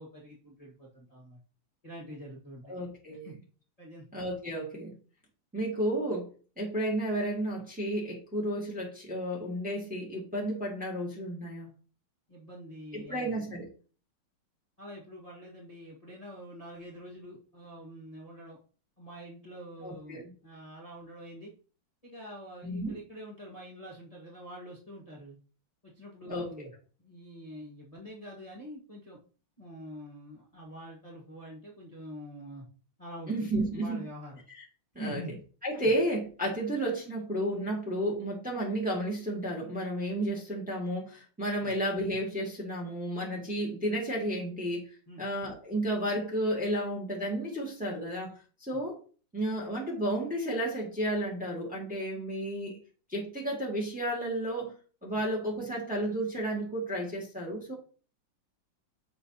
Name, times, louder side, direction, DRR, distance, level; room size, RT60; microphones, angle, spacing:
voice 1, 0.0-1.4 1.8-2.7 3.2-3.4 3.8-4.0 12.3-13.3 14.8-18.6 19.0-21.5 22.0-25.4 25.8-26.7 27.0-29.2 29.6-32.7 33.0-34.4 35.0-35.3 41.6-41.7 45.1-45.3 55.1-55.2, equal, 20° left, -5 dB, 1.4 m, -45 dB
voice 2, 2.6-3.3 4.1-4.9 5.5-6.3 6.6-11.7 12.9-13.7 19.8-20.3 22.6-22.9 26.3-26.7 33.3-34.0 34.5-34.6 34.9-35.2 35.6-44.9 45.2-49.0 49.3-52.8 53.1-54.7 55.0-57.7, right 1 dB, 5° right, -3 dB, 1.5 m, -32 dB
6.7 x 5.7 x 2.8 m, 0.38 s
omnidirectional pair, 2.3 m